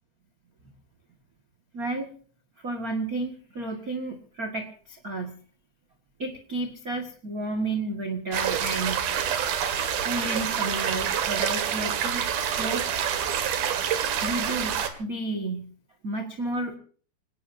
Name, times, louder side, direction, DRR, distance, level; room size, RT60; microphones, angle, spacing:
voice 1, 1.7-2.1 2.6-5.4 6.2-9.0 10.0-12.2 12.6-13.0 14.2-15.7 16.0-16.8, right 2 dB, 35° right, 4 dB, 1.5 m, -32 dB
sound 1, 8.3-14.9, right 8 dB, 75° right, 3.7 m, -27 dB
26.5 x 18.5 x 2.8 m, 0.43 s
omnidirectional pair, 4.4 m